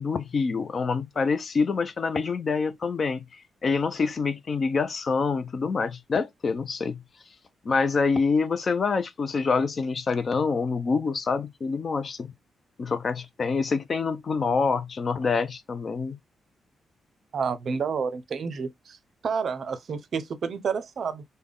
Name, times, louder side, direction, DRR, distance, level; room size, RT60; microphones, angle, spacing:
voice 1, 0.0-3.2 3.6-7.0 7.6-12.3 12.8-16.2, left 4 dB, 35° left, 0.4 m, -26 dB
voice 2, 17.3-19.0 19.2-21.2, right 6 dB, 45° right, 0.5 m, -29 dB
3.5 x 2.1 x 3.6 m
wide cardioid pair, 165°, 0 cm